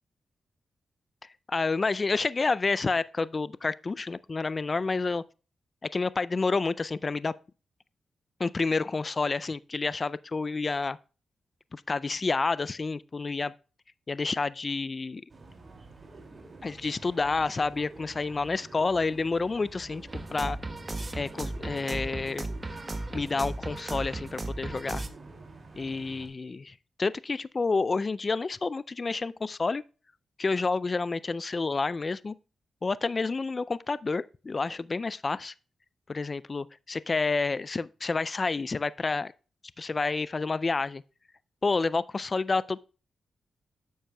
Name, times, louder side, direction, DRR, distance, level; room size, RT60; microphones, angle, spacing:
voice 1, 1.5-5.2 5.9-7.3 8.4-11.0 11.7-13.5 14.1-15.2 16.6-20.0 20.3-20.6 21.1-22.5 23.1-25.0 25.8-29.8 30.4-32.3 32.8-35.5 36.1-39.3 39.8-41.0 41.6-42.8, left 4 dB, 40° left, 0.3 m, -29 dB
sound 1, 15.3-26.3, right 3 dB, 50° right, 2.3 m, -48 dB
sound 2, 20.1-25.1, right 2 dB, 30° right, 1.0 m, -36 dB
10.0 x 7.3 x 2.2 m
cardioid pair, 65°, 0 cm